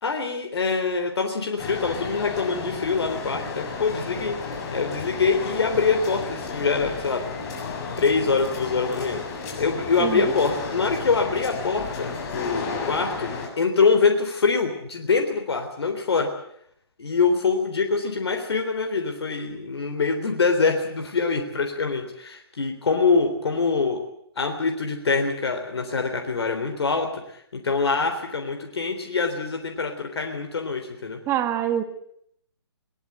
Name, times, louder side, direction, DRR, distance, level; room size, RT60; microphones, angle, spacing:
voice 1, 0.0-4.4 4.7-7.2 7.6-9.2 9.6-16.3 17.0-24.0 24.4-31.2, left 4 dB, 70° left, 4 dB, 3.6 m, -24 dB
sound 1, 1.6-13.5, left 4 dB, 35° left, 7.0 m, -33 dB
voice 2, 10.0-10.3 31.3-31.8, right 11 dB, 20° right, 8 dB, 2.0 m, -25 dB
21.5 x 19.5 x 8.2 m, 0.70 s
figure-of-eight pair, 140°, 14 cm